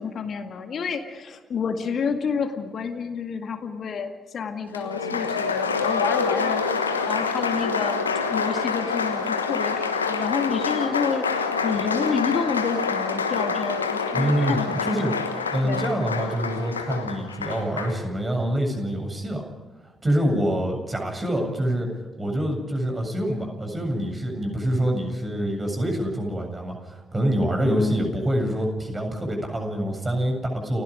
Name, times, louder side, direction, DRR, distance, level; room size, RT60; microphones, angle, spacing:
voice 1, 0.0-6.6 7.1-15.2 15.6-15.9 27.6-28.2, left 6 dB, 55° left, 6 dB, 2.1 m, -29 dB
Applause, 4.7-18.0, left 5 dB, 90° left, 1.2 m, -26 dB
voice 2, 14.1-15.1 15.5-19.4 20.0-21.9 22.2-30.8, right 1 dB, 25° right, 3 dB, 7.8 m, -26 dB
30.0 x 17.0 x 5.1 m, 1.2 s
figure-of-eight pair, 40°, 0 cm